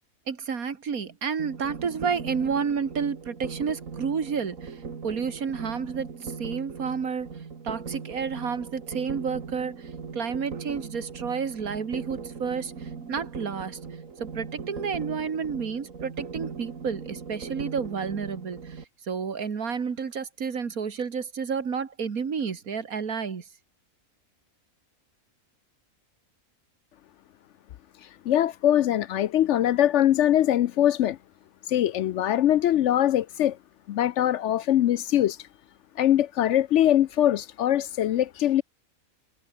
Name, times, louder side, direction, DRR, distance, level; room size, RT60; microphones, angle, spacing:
voice 1, 0.3-4.8 5.0-7.3 7.6-13.8 14.2-23.4, right 6 dB, 90° right, 2.3 m, -30 dB
sound 1, 1.4-18.9, right 5 dB, 70° right, 2.3 m, -39 dB
voice 2, 28.3-31.2 31.7-33.6 33.9-35.4 36.0-38.6, left 12 dB, 65° left, 0.8 m, -22 dB
omnidirectional pair, 1.5 m